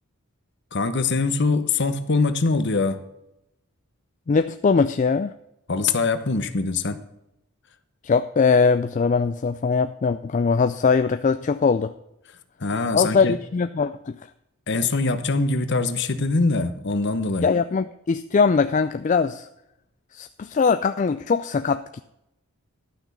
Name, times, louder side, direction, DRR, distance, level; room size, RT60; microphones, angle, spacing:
voice 1, 0.7-3.0 5.7-7.0 12.6-13.3 14.7-17.5, left 3 dB, 50° left, 11 dB, 0.9 m, -23 dB
voice 2, 4.3-5.3 8.0-11.9 12.9-14.2 17.4-19.5 20.1-22.0, left 5 dB, 35° left, 10 dB, 0.3 m, -21 dB
11.5 x 6.1 x 6.7 m, 0.84 s
head